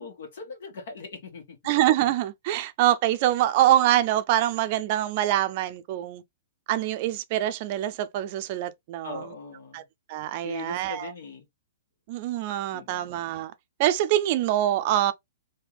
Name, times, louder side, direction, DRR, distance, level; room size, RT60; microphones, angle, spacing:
voice 1, 0.0-1.6 9.0-9.8 10.4-11.4 12.7-13.1, left 4 dB, 70° left, 1.6 m, -40 dB
voice 2, 1.6-6.2 6.7-9.3 9.7-9.8 10.1-11.1 12.1-13.5 13.8-15.1, right 13 dB, 45° right, 0.5 m, -24 dB
3.4 x 2.8 x 3.1 m
hypercardioid pair, 140°, 0 cm